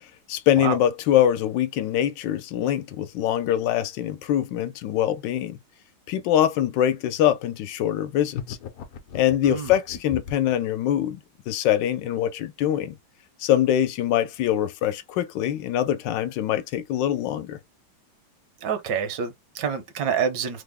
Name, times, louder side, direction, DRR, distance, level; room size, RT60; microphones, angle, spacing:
voice 1, 0.3-5.6 6.1-8.6 9.1-11.2 11.5-12.9 13.4-17.6, left 11 dB, 85° left, 1.3 m, -23 dB
sound 1, 8.3-10.5, left 8 dB, 65° left, 1.0 m, -37 dB
voice 2, 9.4-9.8 18.6-20.6, right 7 dB, 75° right, 1.4 m, -27 dB
3.5 x 2.0 x 3.4 m
omnidirectional pair, 1.9 m